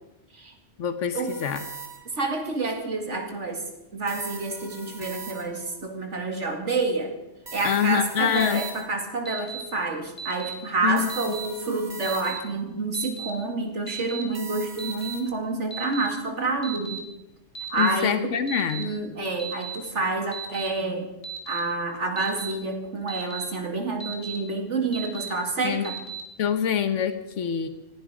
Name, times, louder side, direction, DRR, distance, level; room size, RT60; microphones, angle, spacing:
voice 1, 0.8-1.7 7.6-8.6 10.8-11.2 17.8-18.9 25.6-25.9 26.4-27.7, left 8 dB, 85° left, 10 dB, 1.3 m, -25 dB
sound 1, 1.3-2.3 4.1-5.7 7.5-9.1 11.0-12.6 14.3-15.2, right 4 dB, 40° right, 2.0 m, -41 dB
voice 2, 2.2-3.6 3.9-7.1 7.5-17.1 17.7-18.2 18.8-21.1 21.5-26.0, right 3 dB, 75° right, 4 dB, 2.7 m, -28 dB
Alarm, 8.3-8.7 9.3-9.6 10.2-10.5 11.1-11.5 12.0-12.4 12.9-13.3 13.9-14.2 14.8-15.1 15.7-16.1 16.6-17.0 17.5-17.9 18.5-18.8 19.4-19.8 20.3-20.7 21.2-21.6 22.2-22.5 23.1-23.4 24.0-24.4 24.9-25.3 25.8-26.2, right 7 dB, 50° left, 2.7 m, -36 dB
18.5 x 15.5 x 5.0 m, 0.92 s
omnidirectional pair, 1.2 m